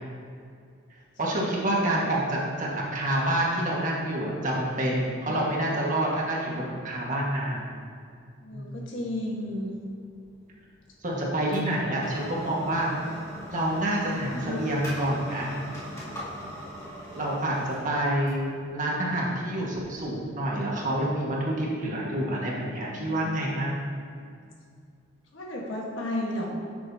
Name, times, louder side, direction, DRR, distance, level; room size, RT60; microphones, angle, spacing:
voice 1, 1.2-7.6 8.5-8.8 11.0-12.9 13.5-15.5 17.2-23.8, right 1 dB, 40° right, -4 dB, 1.6 m, -28 dB
voice 2, 8.4-9.7 14.2-14.6 22.0-23.4 25.3-26.5, left 1 dB, 70° left, -2 dB, 1.5 m, -34 dB
sound 1, 9.3-20.5, equal, 15° left, 2.1 m, -42 dB
10.5 x 6.9 x 2.8 m, 2.3 s
head